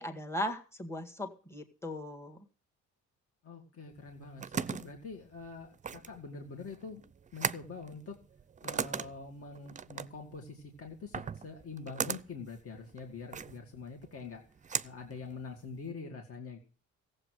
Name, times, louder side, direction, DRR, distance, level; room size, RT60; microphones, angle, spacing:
voice 1, 0.0-2.5, left 1 dB, 10° left, 5 dB, 1.9 m, -38 dB
voice 2, 3.4-7.0 7.3-8.1 8.6-14.4 14.8-16.6, left 4 dB, 50° left, 2 dB, 2.3 m, -45 dB
sound 1, 4.0-15.9, right 6 dB, 25° right, 0.5 m, -39 dB
15.0 x 7.7 x 6.5 m, 0.38 s
cardioid pair, 90°, 30 cm